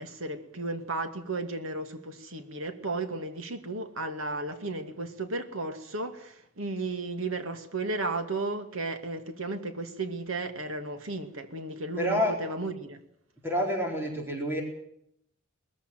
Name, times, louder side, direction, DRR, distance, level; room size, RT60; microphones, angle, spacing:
voice 1, 0.0-13.0, right 2 dB, 80° right, 2.4 m, -34 dB
voice 2, 12.0-12.3 13.4-14.6, equal, 10° right, 4.2 m, -28 dB
20.5 x 14.5 x 9.2 m
head